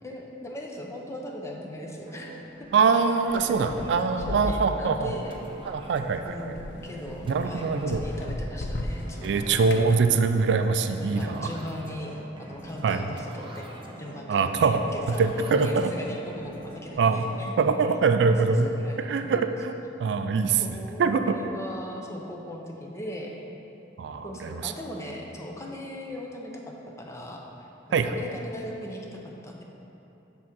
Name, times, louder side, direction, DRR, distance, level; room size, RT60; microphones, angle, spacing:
voice 1, 0.0-2.7 3.3-3.9 4.2-5.7 6.2-9.6 11.0-13.7 14.0-17.6 18.4-19.4 20.6-23.3 24.2-29.6, equal, 15° left, -1 dB, 0.6 m, -39 dB
sound 1, 2.1-17.7, right 1 dB, 30° right, 0.6 m, -45 dB
voice 2, 2.7-5.1 5.7-6.4 7.3-8.0 9.2-11.5 12.8-13.0 14.3-14.8 15.2-15.9 17.0-17.2 17.6-18.7 19.0-19.7 20.0-21.4 24.0-24.7 27.9-28.2, right 5 dB, 65° right, 8 dB, 0.3 m, -23 dB
sound 2, 3.3-9.9, left 1 dB, 65° left, 0.5 m, -37 dB
7.1 x 3.6 x 5.9 m, 3.0 s
head